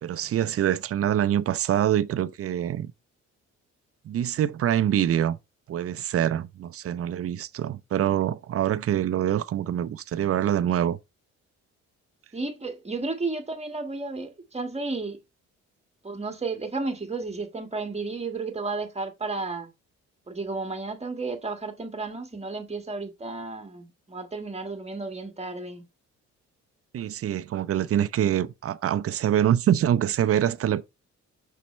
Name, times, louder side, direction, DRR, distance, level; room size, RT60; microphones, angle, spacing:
voice 1, 0.0-2.9 4.0-5.4 5.7-11.0 26.9-30.8, right 10 dB, 50° right, 0.6 m, -25 dB
voice 2, 12.3-15.2 16.0-19.7 20.3-25.8, right 3 dB, 20° right, 1.6 m, -33 dB
5.9 x 5.6 x 3.1 m
cardioid pair, 90°, 30 cm